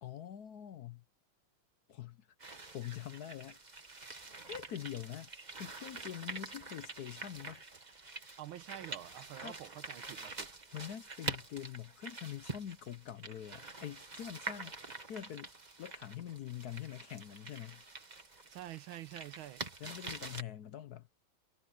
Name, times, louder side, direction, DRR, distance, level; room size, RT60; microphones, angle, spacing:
voice 1, 0.0-1.0 1.9-2.3 2.7-3.6 4.5-5.3 5.6-7.6 9.4-9.6 10.7-14.7 15.1-15.5 15.8-17.8 19.8-21.1, left 11 dB, 65° left, 1.1 m, -44 dB
sound 1, 2.4-20.4, right 3 dB, 25° right, 1.6 m, -46 dB
voice 2, 8.4-10.5 18.5-19.7, right 13 dB, 90° right, 1.6 m, -47 dB
omnidirectional pair, 2.2 m